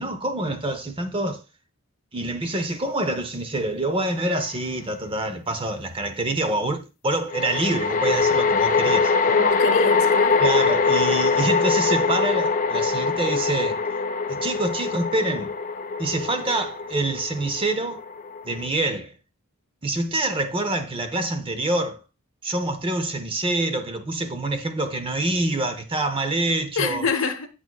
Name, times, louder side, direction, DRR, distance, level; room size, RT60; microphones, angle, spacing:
voice 1, 0.0-1.4 2.1-9.1 10.4-13.8 14.3-15.5 16.0-18.0 18.4-19.1 19.8-22.0 22.4-27.1, right 2 dB, 25° right, 0.7 m, -26 dB
sound 1, 4.3-4.4 7.3-18.7, left 4 dB, 35° left, 0.3 m, -23 dB
voice 2, 9.3-10.5 26.8-27.5, left 4 dB, 60° left, 1.0 m, -26 dB
8.4 x 7.8 x 2.3 m
head